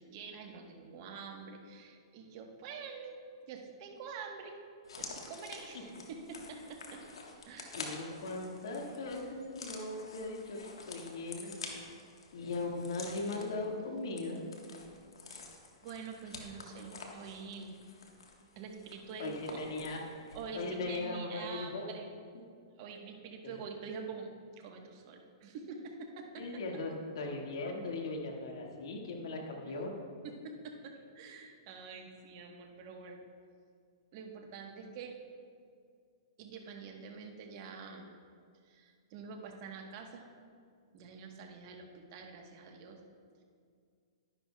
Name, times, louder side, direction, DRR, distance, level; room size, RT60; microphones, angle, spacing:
voice 1, 0.0-3.2 3.5-4.6 5.0-7.0 7.5-7.9 15.3-15.4 15.8-17.8 18.5-20.0 20.3-22.1 22.8-26.6 29.7-29.8 30.2-33.2 34.1-35.2 36.4-38.1 38.6-40.3 40.9-43.0, right 5 dB, 45° right, 2 dB, 1.2 m, -46 dB
sound 1, 4.8-20.5 20.8-21.0, left 4 dB, 90° left, 1.4 m, -49 dB
voice 2, 7.7-10.6 10.9-11.5 12.3-14.4 19.2-21.9 23.4-23.5 26.4-30.0, left 2 dB, 70° left, 0 dB, 1.8 m, -39 dB
12.0 x 10.5 x 2.3 m, 2.2 s
hypercardioid pair, 135°, 3 cm